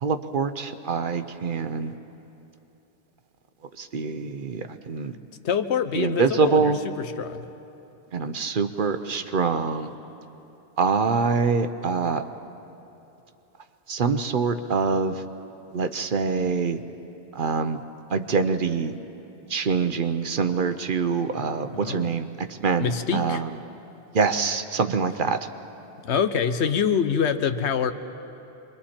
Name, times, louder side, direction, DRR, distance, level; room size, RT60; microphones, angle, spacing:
voice 1, 0.0-1.9 3.8-5.1 5.9-6.8 8.1-9.9 10.8-12.2 13.9-15.2 15.7-16.8 17.3-17.8 18.1-19.0 19.5-23.5 24.1-25.4, right 5 dB, 55° right, 9 dB, 0.9 m, -25 dB
voice 2, 5.4-6.7 7.0-7.5 21.7-22.1 22.8-23.4 26.0-27.9, left 7 dB, 80° left, 10 dB, 1.1 m, -25 dB
27.0 x 22.5 x 4.4 m, 2.9 s
omnidirectional pair, 1.1 m